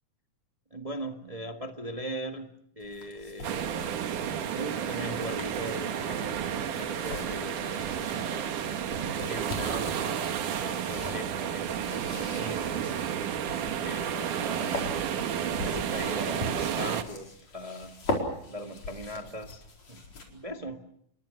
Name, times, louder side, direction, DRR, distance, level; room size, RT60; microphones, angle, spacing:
voice 1, 0.7-2.5 2.8-3.8 4.5-8.5 9.2-10.3 10.6-13.0 13.8-15.1 15.6-17.9 18.5-19.6 19.9-20.0 20.3-20.8, equal, 25° right, 4 dB, 0.7 m, -39 dB
sound 1, 2.8-20.5, left 2 dB, 55° left, 5.7 m, -41 dB
sound 2, 3.4-17.0, right 9 dB, 75° right, 3.0 m, -31 dB
28.5 x 23.0 x 6.5 m, 0.69 s
omnidirectional pair, 3.7 m